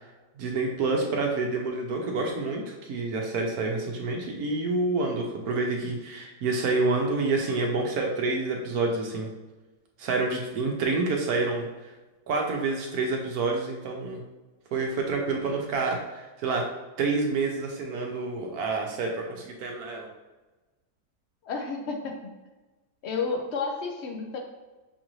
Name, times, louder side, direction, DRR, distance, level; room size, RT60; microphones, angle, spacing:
voice 1, 0.4-9.3 10.0-11.7 12.3-14.2 14.7-16.6 17.0-20.1, right 3 dB, 70° right, 1 dB, 1.1 m, -28 dB
voice 2, 21.4-22.1 23.0-24.4, left 4 dB, 65° left, 2 dB, 0.7 m, -31 dB
6.2 x 2.5 x 3.0 m, 1.2 s
omnidirectional pair, 1.7 m